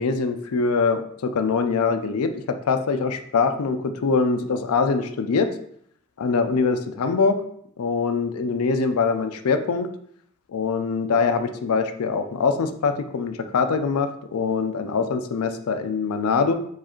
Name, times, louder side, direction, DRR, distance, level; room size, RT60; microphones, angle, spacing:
voice 1, 0.0-5.5 6.2-7.4 7.8-9.9 10.5-16.5, left 4 dB, 90° left, 8 dB, 0.5 m, -23 dB
4.7 x 2.5 x 4.4 m, 0.66 s
head